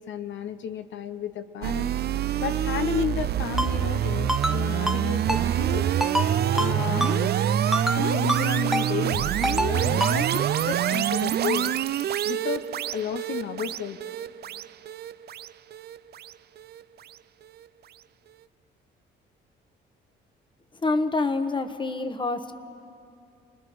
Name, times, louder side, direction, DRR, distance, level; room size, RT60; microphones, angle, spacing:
voice 1, 0.0-1.9 2.4-5.9 6.5-7.4 7.9-11.8 12.2-12.7 12.9-14.0, left 8 dB, 70° left, 10 dB, 0.8 m, -32 dB
sound 1, 1.6-16.8, right 10 dB, 55° right, 0.5 m, -26 dB
Ringtone, 3.6-3.7 4.3-4.6 4.9-5.0 5.3-5.4 6.0-6.3 6.6-6.7 7.0-7.1 7.7-8.0 8.3-8.4 8.7-8.9 9.4-9.7 10.0-10.1, equal, ahead, 0.9 m, -25 dB
voice 2, 20.7-22.5, left 3 dB, 25° left, 10 dB, 1.2 m, -26 dB
28.5 x 19.5 x 4.7 m, 2.6 s
cardioid pair, 90°, 20 cm